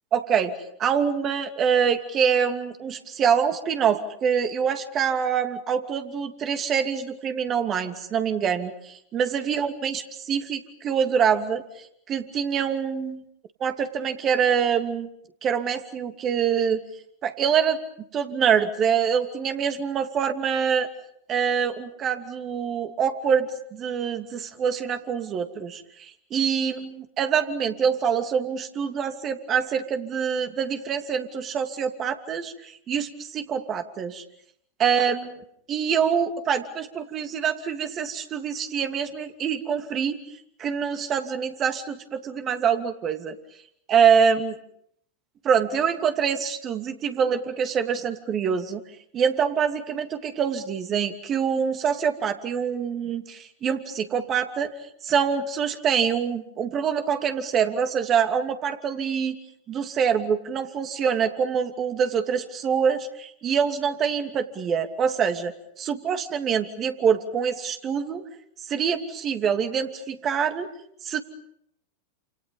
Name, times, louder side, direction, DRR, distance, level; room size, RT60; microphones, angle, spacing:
voice 1, 0.1-0.5 0.8-11.6 12.1-13.2 13.6-15.1 15.4-16.8 17.2-17.8 18.1-20.9 21.3-32.5 32.9-34.2 34.8-35.3 35.7-40.2 40.6-43.4 43.9-44.6 45.4-48.8 49.1-54.7 55.0-59.4 59.7-65.5 65.8-68.2 68.7-70.7 71.0-71.2, right 7 dB, 30° right, 7 dB, 2.7 m, -25 dB
29.0 x 28.0 x 5.5 m, 0.70 s
figure-of-eight pair, 95°, 0 cm